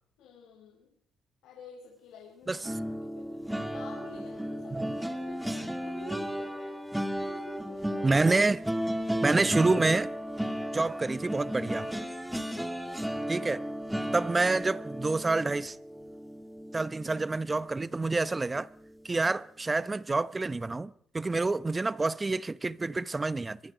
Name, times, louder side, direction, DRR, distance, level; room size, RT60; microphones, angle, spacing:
voice 1, 0.2-0.9 1.4-2.6 3.0-6.8 7.1-8.2, left 4 dB, 90° left, 4.6 m, -49 dB
sound 1, 2.6-17.8 18.2-18.4 18.7-18.9, equal, 5° right, 2.2 m, -35 dB
voice 2, 8.0-8.6 9.2-10.1 10.7-11.9 13.3-13.7 14.1-15.8 16.7-18.7 19.0-23.6, right 3 dB, 20° right, 0.8 m, -28 dB
24.0 x 22.5 x 5.1 m
cardioid pair, 90°, 0 cm